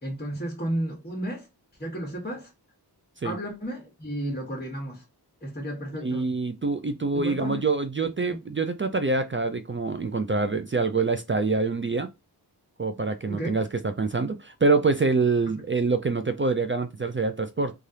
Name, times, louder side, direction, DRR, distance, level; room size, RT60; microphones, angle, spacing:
voice 1, 0.0-1.5 1.8-2.5 3.2-5.0 5.4-6.3 7.1-7.6 8.2-8.4 13.2-13.6 15.6-15.7, right 1 dB, 25° left, 1.1 m, -33 dB
voice 2, 6.0-12.1 12.8-17.7, right 3 dB, 30° right, 0.4 m, -25 dB
3.2 x 2.4 x 2.7 m
wide cardioid pair, 45°, 41 cm